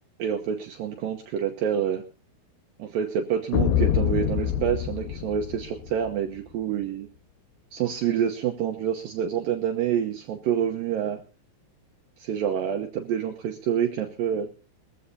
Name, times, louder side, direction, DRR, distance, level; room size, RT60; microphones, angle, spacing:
voice 1, 0.2-2.0 2.8-7.1 7.7-11.2 12.2-14.5, right 8 dB, 70° right, 4 dB, 2.4 m, -27 dB
sound 1, 3.5-6.1, left 10 dB, 75° left, 2.7 m, -26 dB
21.5 x 15.0 x 2.7 m, 0.32 s
omnidirectional pair, 4.7 m